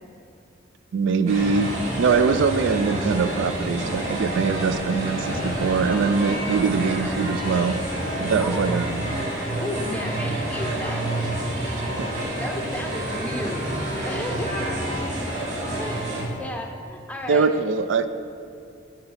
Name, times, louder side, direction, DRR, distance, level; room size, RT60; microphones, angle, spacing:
voice 1, 0.9-1.7 2.0-7.8 8.2-9.1 12.0-12.1 17.3-18.1, right 5 dB, 75° right, 11 dB, 0.3 m, -22 dB
sound 1, 1.3-16.2, right 1 dB, 40° right, 2.0 m, -28 dB
voice 2, 8.4-8.8 9.6-11.0 12.4-13.6 14.1-14.5 15.8-16.1 16.4-17.5, left 1 dB, 5° left, 2 dB, 0.6 m, -33 dB
10.0 x 3.9 x 5.6 m, 2.6 s
head